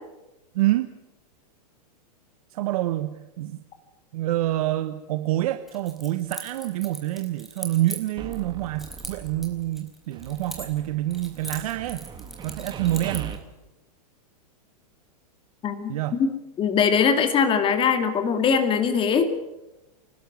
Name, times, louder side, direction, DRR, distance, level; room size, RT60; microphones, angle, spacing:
voice 1, 0.5-0.9 2.5-3.6 4.1-12.1 12.4-13.3 15.9-16.2, right 15 dB, 60° right, 10 dB, 1.2 m, -27 dB
Keys jangling, 5.7-8.4 8.8-10.9 11.1-13.4, right 1 dB, ahead, 4.4 m, -39 dB
sound 1, 8.2-9.8 10.1-13.4, right 7 dB, 20° right, 2.2 m, -40 dB
voice 2, 15.6-15.9 16.2-16.3 16.6-19.3, left 6 dB, 25° left, 7 dB, 2.4 m, -21 dB
28.5 x 12.5 x 9.4 m, 0.99 s
hypercardioid pair, 130°, 21 cm